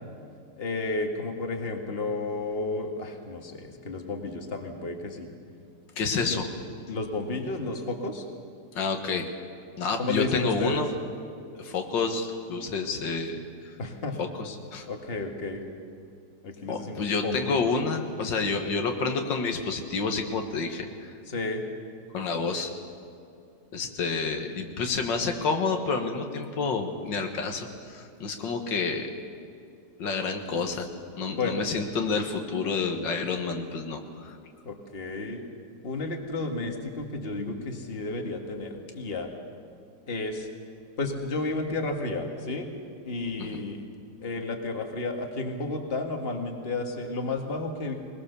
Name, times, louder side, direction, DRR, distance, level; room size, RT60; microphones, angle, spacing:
voice 1, 0.6-5.3 6.3-6.4 6.9-8.2 10.0-10.8 13.8-14.1 14.9-15.6 16.4-17.7 21.3-21.6 31.3-31.6 34.7-35.4 35.8-39.3 40.1-40.5 41.0-42.7 43.0-43.8 44.2-47.9, left 2 dB, 35° left, 3 dB, 1.9 m, -32 dB
voice 2, 6.0-6.5 8.8-9.3 9.8-10.9 11.6-13.4 14.2-14.9 16.7-20.9 22.1-22.7 23.7-29.1 30.0-30.9 31.2-34.4 43.4-43.6, left 4 dB, 90° left, 5 dB, 2.2 m, -29 dB
21.0 x 20.5 x 6.8 m, 2.5 s
omnidirectional pair, 1.9 m